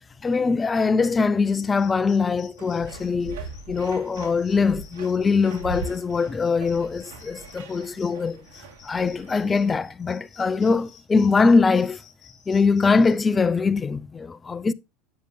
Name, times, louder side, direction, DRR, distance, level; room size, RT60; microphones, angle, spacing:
voice 1, 0.2-3.4 3.7-8.4 8.8-12.0 12.5-14.7, left 4 dB, 20° left, 0.4 m, -22 dB
sound 1, 1.5-13.2, left 7 dB, 35° left, 2.4 m, -52 dB
sound 2, 2.6-9.9, right 3 dB, 85° right, 2.7 m, -40 dB
9.4 x 8.2 x 2.3 m
supercardioid pair, 115°, 0 cm